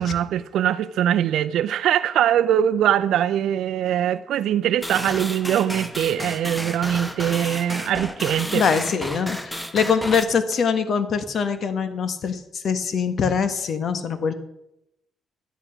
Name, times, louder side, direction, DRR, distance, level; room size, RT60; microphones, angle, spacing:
voice 1, 0.0-8.6, right 10 dB, 80° right, 9 dB, 0.5 m, -22 dB
sound 1, 4.8-10.2, equal, 5° left, 1.2 m, -32 dB
voice 2, 8.4-14.3, left 6 dB, 60° left, 10 dB, 1.5 m, -23 dB
12.0 x 10.0 x 5.8 m, 0.83 s
cardioid pair, 90°, 0 cm